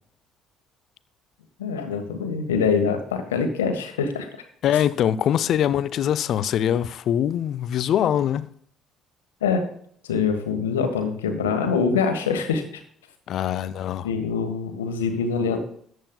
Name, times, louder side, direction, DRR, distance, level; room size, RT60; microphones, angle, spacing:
voice 1, 1.6-4.3 4.7-4.8 9.4-9.6 10.1-12.8 14.0-15.6, left 5 dB, 80° left, 1.5 m, -24 dB
voice 2, 4.6-8.5 13.3-14.1, left 10 dB, 55° left, 0.6 m, -23 dB
14.0 x 9.4 x 2.3 m
figure-of-eight pair, 50°, 0 cm